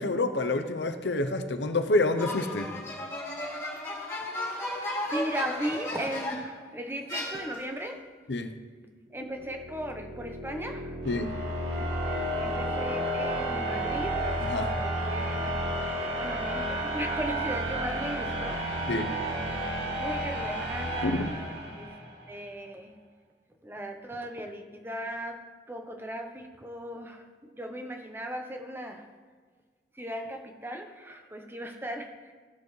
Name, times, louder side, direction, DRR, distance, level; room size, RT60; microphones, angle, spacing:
voice 1, 0.0-2.7 8.3-8.5 11.1-11.3 14.4-14.8 18.9-19.2 21.0-21.3, left 2 dB, 85° left, 8 dB, 0.7 m, -28 dB
sound 1, 2.2-6.6 7.1-7.8, left 1 dB, 15° left, 2.2 m, -35 dB
voice 2, 4.4-8.0 9.1-11.0 12.3-14.4 14.8-15.5 16.2-18.6 19.9-21.9 22.3-23.0 23.6-25.4 25.7-29.0 29.9-32.3, equal, 15° right, 4 dB, 0.8 m, -37 dB
sound 2, 9.2-22.1, right 1 dB, 90° right, 2.6 m, -32 dB
16.5 x 6.9 x 3.2 m, 1.5 s
head